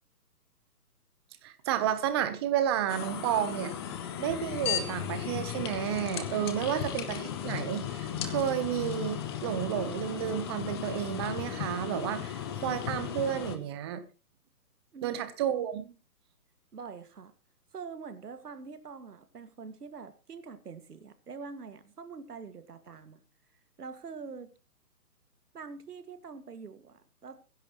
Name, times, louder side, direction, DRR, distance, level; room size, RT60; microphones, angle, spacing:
voice 1, 1.4-3.7 4.2-14.0 15.0-15.8, right 10 dB, 15° right, 11 dB, 0.9 m, -31 dB
sound 1, 2.9-13.6, left 10 dB, 15° left, 0.9 m, -36 dB
voice 2, 14.9-15.2 15.5-15.9 16.7-17.3 17.7-23.2 23.8-24.5 25.5-27.4, right 5 dB, 70° right, 9 dB, 2.1 m, -45 dB
22.5 x 10.5 x 3.1 m, 0.33 s
hypercardioid pair, 150°, 48 cm